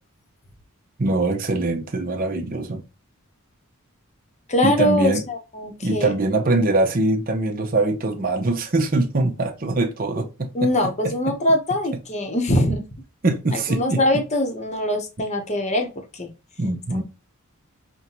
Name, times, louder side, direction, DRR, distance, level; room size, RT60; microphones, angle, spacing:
voice 1, 1.0-2.8 4.6-5.2 5.8-10.7 11.0-11.4 13.2-14.2 16.6-17.0, right 2 dB, 40° right, 0.6 m, -23 dB
voice 2, 4.5-6.1 10.5-12.8 13.5-16.3, left 1 dB, 30° left, 0.8 m, -22 dB
5.4 x 2.2 x 2.9 m
head